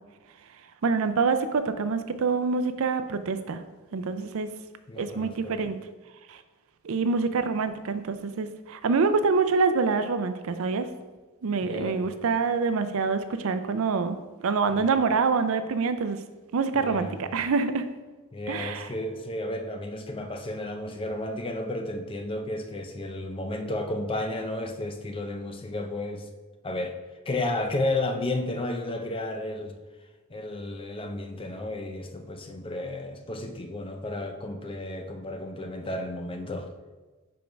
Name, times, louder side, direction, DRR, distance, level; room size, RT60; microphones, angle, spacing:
voice 1, 0.8-3.6 3.9-4.5 5.0-5.8 6.3-6.4 6.8-10.9 11.4-16.2 16.5-17.8 18.5-18.9, right 4 dB, 65° right, 10 dB, 0.5 m, -26 dB
voice 2, 4.9-5.6 11.6-12.1 14.7-14.9 16.7-17.2 18.3-26.3 26.6-27.0 27.3-29.8 30.3-36.7, left 1 dB, 25° left, 5 dB, 0.5 m, -32 dB
5.1 x 4.6 x 5.1 m, 1.2 s
head